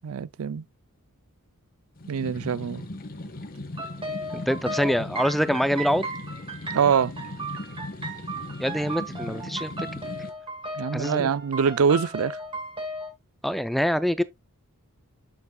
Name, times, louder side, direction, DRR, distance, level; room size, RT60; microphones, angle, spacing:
voice 1, 0.0-0.6 2.1-2.9 6.7-7.1 10.8-12.4, right 6 dB, 70° right, 0.4 m, -24 dB
sound 1, 2.0-10.3, left 2 dB, 40° left, 1.2 m, -38 dB
sound 2, 3.8-13.1, right 1 dB, 25° right, 1.8 m, -36 dB
voice 2, 4.3-6.1 8.6-9.7 10.9-11.3 13.4-14.2, equal, ahead, 0.3 m, -25 dB
8.2 x 6.7 x 2.2 m
head